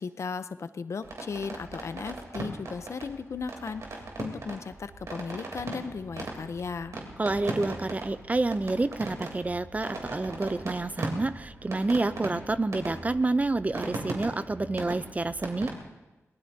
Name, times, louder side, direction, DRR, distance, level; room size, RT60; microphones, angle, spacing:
voice 1, 0.0-6.9, left 5 dB, 60° left, 12 dB, 0.7 m, -36 dB
sound 1, 1.0-15.7, right 2 dB, 75° right, 3.3 m, -39 dB
voice 2, 7.2-15.7, right 2 dB, 25° right, 13 dB, 0.5 m, -28 dB
22.0 x 18.5 x 2.8 m, 1.1 s
cardioid pair, 70°, 5 cm